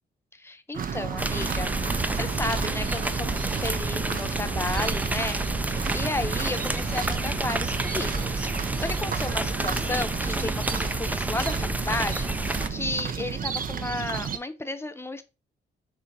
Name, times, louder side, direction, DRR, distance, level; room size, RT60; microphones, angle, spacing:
voice 1, 0.3-1.7 2.1-12.3 12.7-15.2, left 2 dB, 15° left, 0.8 m, -33 dB
sound 1, 0.7-14.4, right 7 dB, 50° right, 0.7 m, -32 dB
sound 2, 1.2-12.7, right 2 dB, 10° right, 0.4 m, -29 dB
7.1 x 2.8 x 4.7 m
cardioid pair, 95°, 18 cm